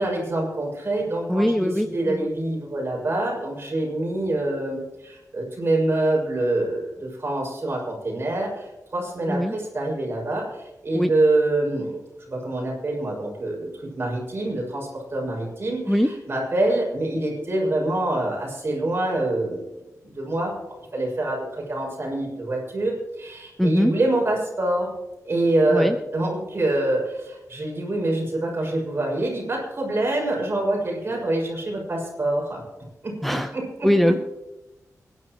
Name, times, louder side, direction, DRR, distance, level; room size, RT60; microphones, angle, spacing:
voice 1, 0.0-12.0 12.3-19.6 20.0-20.5 20.9-24.9 25.2-32.6 33.0-33.9, right 2 dB, 40° right, -2 dB, 6.1 m, -25 dB
voice 2, 1.3-2.3 9.3-9.5 10.9-11.1 15.9-16.1 23.6-23.9 25.7-25.9 33.2-33.5 33.8-34.1, equal, ahead, 7 dB, 0.6 m, -21 dB
25.5 x 11.0 x 3.1 m, 1.0 s
wide cardioid pair, 140°, 6 cm